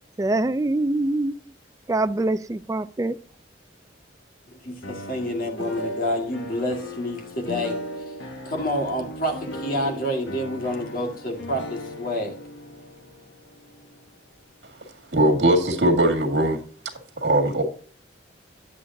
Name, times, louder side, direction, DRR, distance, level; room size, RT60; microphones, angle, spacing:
voice 1, 0.2-1.3 1.9-3.2, right 2 dB, 20° right, 0.3 m, -24 dB
voice 2, 4.5-7.8 8.1-8.2 8.4-12.4, equal, 50° left, 1.9 m, -28 dB
sound 1, 4.8-14.8, equal, 85° left, 1.5 m, -37 dB
voice 3, 15.1-16.6 17.2-17.6, right 1 dB, 70° right, 1.9 m, -20 dB
9.4 x 8.4 x 2.7 m
head